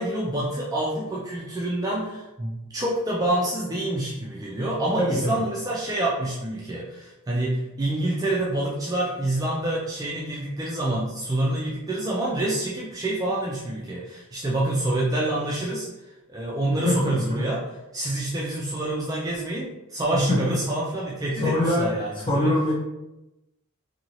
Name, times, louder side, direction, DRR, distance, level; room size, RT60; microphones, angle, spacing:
voice 1, 0.0-15.9 16.3-17.6 17.9-22.5, right 1 dB, 15° right, -5 dB, 0.3 m, -27 dB
voice 2, 5.0-5.4 16.8-17.4 20.1-20.6 21.4-21.9 22.1-22.7, left 1 dB, 20° left, -4 dB, 0.7 m, -23 dB
2.7 x 2.7 x 2.9 m, 0.97 s
head